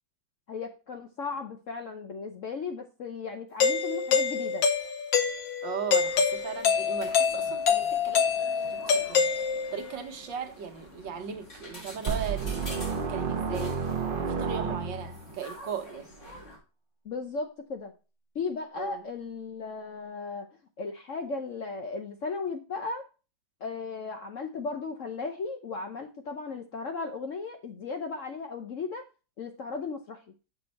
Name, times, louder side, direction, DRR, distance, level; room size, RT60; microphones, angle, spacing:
voice 1, 0.5-4.7 17.0-17.9 18.3-20.5 20.8-23.1 23.6-29.0 29.4-30.2, left 4 dB, 60° left, 0.8 m, -36 dB
Doorbell, 3.6-9.9, left 6 dB, 85° left, 1.6 m, -26 dB
voice 2, 5.6-8.3 8.7-9.3 9.7-12.7 12.9-13.8 14.2-16.1 18.7-19.1, right 7 dB, 75° right, 1.7 m, -37 dB
sound 1, 5.9-16.6, left 1 dB, 40° left, 3.0 m, -47 dB
sound 2, 12.1-15.3, right 5 dB, 50° right, 0.6 m, -31 dB
7.0 x 6.0 x 4.1 m
omnidirectional pair, 2.0 m